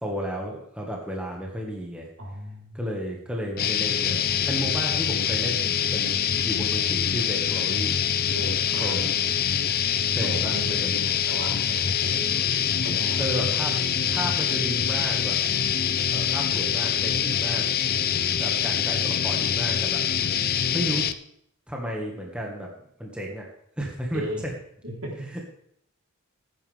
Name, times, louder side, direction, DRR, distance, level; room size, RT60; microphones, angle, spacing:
voice 1, 0.0-2.1 2.7-8.0 8.8-9.1 10.1-10.8 13.2-13.8 14.1-15.4 16.1-17.7 18.4-20.0 20.7-21.1 21.7-22.7 23.0-23.5 23.8-24.5 25.3-25.4, equal, 5° right, -1 dB, 1.8 m, -33 dB
voice 2, 2.2-2.8 8.3-9.3 10.2-12.4 12.8-13.2 24.1-24.6 24.8-25.3, right 1 dB, 65° right, -3 dB, 3.9 m, -36 dB
sound 1, 3.6-21.1, left 8 dB, 45° left, 0.5 m, -25 dB
16.5 x 9.2 x 3.5 m, 0.70 s
head